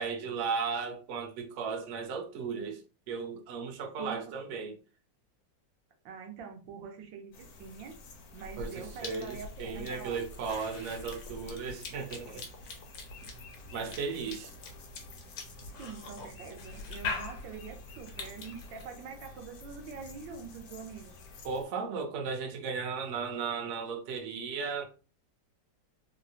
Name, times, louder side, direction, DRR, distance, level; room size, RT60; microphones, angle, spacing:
voice 1, 0.0-2.8 3.1-4.7 8.6-12.5 13.7-14.5 21.4-24.8, right 5 dB, 65° right, 0.7 m, -35 dB
voice 2, 4.0-4.4 6.0-8.0 8.3-10.2 15.8-21.1, right 6 dB, 85° right, 1.4 m, -45 dB
sound 1, 7.3-21.6, left 2 dB, 65° left, 1.0 m, -51 dB
Cough / Chewing mastication, 8.4-18.9, left 4 dB, 85° left, 1.4 m, -43 dB
3.6 x 2.0 x 2.6 m
omnidirectional pair, 2.0 m